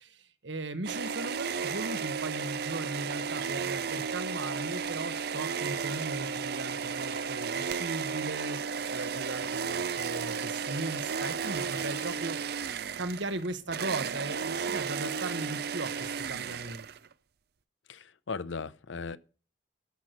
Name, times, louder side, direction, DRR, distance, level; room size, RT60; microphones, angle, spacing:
voice 1, 0.0-8.6 8.9-16.9, right 2 dB, 75° right, 1.3 m, -38 dB
sound 1, 0.8-17.1, right 6 dB, 55° right, 0.5 m, -34 dB
voice 2, 17.9-19.2, left 4 dB, 80° left, 0.7 m, -37 dB
13.0 x 6.0 x 6.5 m
head